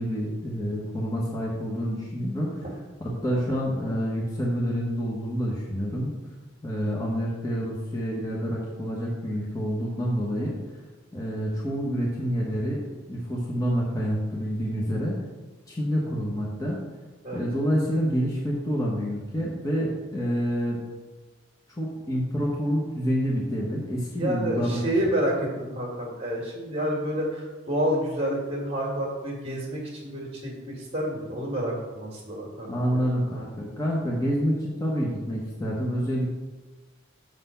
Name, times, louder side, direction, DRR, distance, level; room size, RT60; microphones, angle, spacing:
voice 1, 0.0-2.5 3.0-6.1 6.6-10.6 11.1-15.1 15.7-16.8 17.3-20.8 21.8-24.8 32.7-36.3, equal, 15° left, -4 dB, 1.1 m, -28 dB
voice 2, 24.2-33.0, equal, 30° right, -2 dB, 1.8 m, -29 dB
6.6 x 4.1 x 5.6 m, 1.3 s
head